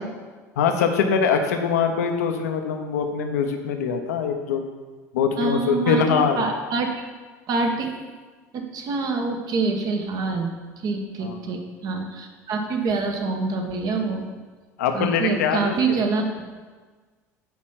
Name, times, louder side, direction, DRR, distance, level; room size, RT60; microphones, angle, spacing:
voice 1, 0.6-4.6 5.1-6.5 11.2-11.4 14.8-16.0, left 6 dB, 70° left, 5 dB, 0.9 m, -23 dB
voice 2, 5.4-7.0 7.5-7.9 8.5-14.3 14.9-16.3, right 4 dB, 45° right, 3 dB, 1.3 m, -26 dB
9.1 x 4.3 x 5.8 m, 1.4 s
figure-of-eight pair, 70°, 9 cm